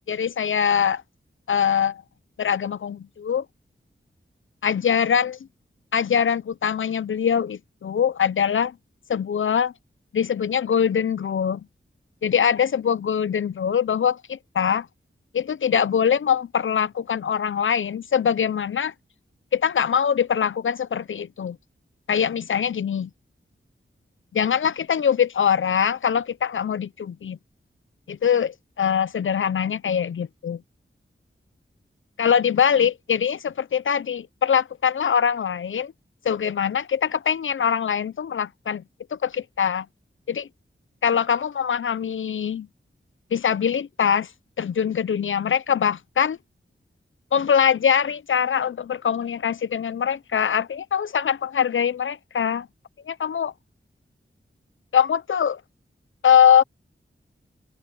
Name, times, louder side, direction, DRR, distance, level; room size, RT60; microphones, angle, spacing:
voice 1, 0.1-1.0 1.5-2.0 2.4-3.5 4.6-5.4 5.9-8.7 9.1-9.7 10.1-11.6 12.2-14.9 15.3-18.9 19.5-21.6 22.1-23.1 24.3-27.4 28.1-30.6 32.2-35.9 36.2-38.8 39.1-39.9 40.3-40.5 41.0-42.7 43.3-44.3 44.6-46.4 47.3-52.7 53.1-53.5 54.9-55.6 56.2-56.6, left 8 dB, 70° left, 0.5 m, -22 dB
open air
wide cardioid pair, 90°, 21 cm